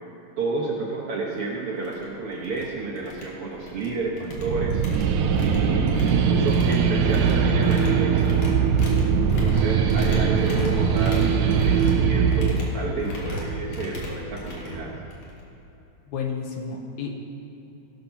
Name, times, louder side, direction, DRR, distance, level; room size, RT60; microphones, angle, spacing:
voice 1, 0.4-4.8 5.4-8.4 9.2-14.9, right 3 dB, 60° right, -3 dB, 1.6 m, -30 dB
sound 1, 1.3-1.4 1.8-2.0 2.3-2.6 3.0-3.9 4.2-15.4, left 1 dB, 55° left, 2.8 m, -36 dB
sound 2, 4.3-12.5, right 6 dB, 80° right, 2.1 m, -21 dB
voice 2, 16.0-17.2, left 6 dB, 70° left, 2 dB, 2.2 m, -31 dB
18.0 x 6.7 x 5.7 m, 3.0 s
omnidirectional pair, 3.7 m